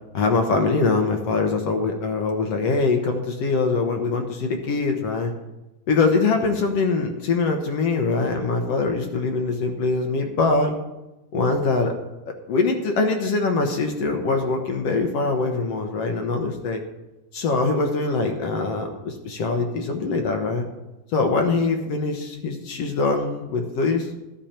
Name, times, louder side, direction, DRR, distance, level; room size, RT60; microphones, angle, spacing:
voice 1, 0.1-5.3 5.9-10.7 11.3-11.9 12.5-16.8 17.3-20.6 21.1-24.1, left 3 dB, 65° left, 4 dB, 1.7 m, -23 dB
13.5 x 10.5 x 4.4 m, 1.0 s
omnidirectional pair, 3.8 m